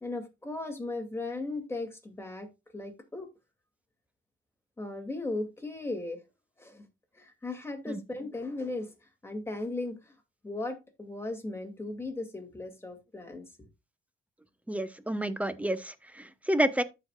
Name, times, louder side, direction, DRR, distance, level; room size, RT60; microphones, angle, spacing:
voice 1, 0.0-2.5 2.7-3.3 4.8-6.2 6.6-6.9 7.1-9.0 9.2-10.2 10.4-13.7, left 2 dB, 10° left, 2.3 m, -37 dB
voice 2, 14.7-16.8, right 1 dB, 5° right, 0.9 m, -29 dB
14.0 x 4.9 x 2.3 m
cardioid pair, 90°, 20 cm